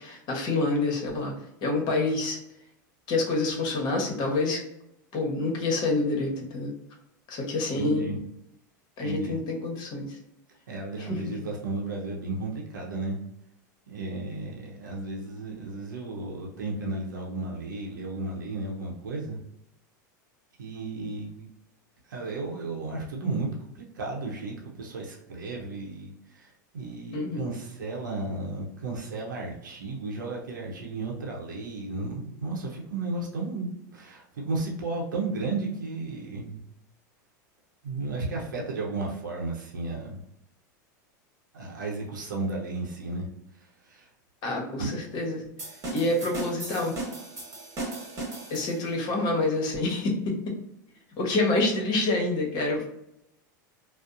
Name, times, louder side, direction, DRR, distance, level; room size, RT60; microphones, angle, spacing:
voice 1, 0.0-1.3 1.6-2.4 3.1-4.6 5.1-6.7 7.3-8.1 9.0-10.1 11.0-11.2 27.1-27.4 44.4-45.5 45.9-46.9 48.5-50.4 51.2-52.9, left 2 dB, 45° left, 0 dB, 0.9 m, -27 dB
voice 2, 7.8-8.1 9.0-9.4 10.7-13.2 13.9-19.4 20.6-21.5 22.1-23.5 23.8-36.6 37.8-40.2 41.5-43.3 43.9-44.1 44.8-44.9, right 3 dB, 90° right, -2 dB, 0.6 m, -34 dB
sound 1, 45.6-49.0, right 2 dB, 30° right, 1.2 m, -37 dB
2.6 x 2.0 x 2.4 m, 0.80 s
hypercardioid pair, 100°, 10 cm